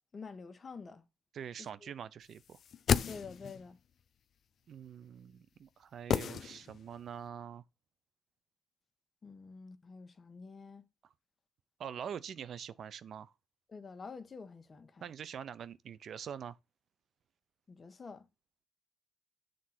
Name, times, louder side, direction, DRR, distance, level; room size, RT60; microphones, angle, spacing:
voice 1, 0.1-1.0 1.6-1.9 3.1-3.8 9.2-10.8 13.7-15.0 17.7-18.2, left 4 dB, 35° left, 1.2 m, -48 dB
voice 2, 1.3-2.6 4.7-7.6 11.8-13.3 15.0-16.6, right 8 dB, 60° right, 0.5 m, -44 dB
sound 1, 2.5-3.7 6.1-7.0 7.3-7.4, left 8 dB, 60° left, 0.5 m, -33 dB
7.5 x 3.8 x 5.8 m
cardioid pair, 90°, 0 cm